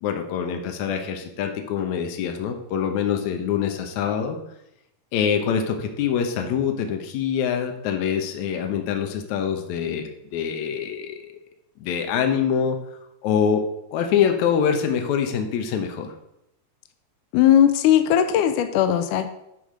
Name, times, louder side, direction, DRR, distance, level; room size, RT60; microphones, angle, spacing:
voice 1, 0.0-4.4 5.1-11.2 11.8-12.8 13.2-13.6 13.9-16.1, left 7 dB, 65° left, 5 dB, 2.2 m, -24 dB
voice 2, 17.3-19.3, left 10 dB, 80° left, 9 dB, 1.9 m, -18 dB
10.5 x 4.9 x 5.0 m, 0.82 s
omnidirectional pair, 4.0 m